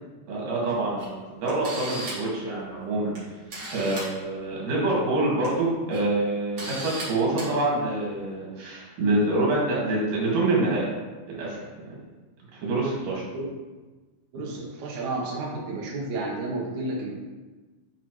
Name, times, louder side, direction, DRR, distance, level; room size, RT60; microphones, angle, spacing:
voice 1, 0.3-3.2 3.7-10.9 11.3-11.6 12.5-13.2, right 2 dB, 85° right, -5 dB, 3.6 m, -26 dB
Camera, 1.0-1.1 1.5-2.3 3.1-3.2 3.5-4.1 5.2-5.5 5.9-6.0 6.6-7.0 7.4-7.5, right 1 dB, 45° right, 2.9 m, -35 dB
voice 2, 14.3-17.1, right 2 dB, 70° right, -4 dB, 2.3 m, -31 dB
8.7 x 5.1 x 3.1 m, 1.2 s
omnidirectional pair, 3.7 m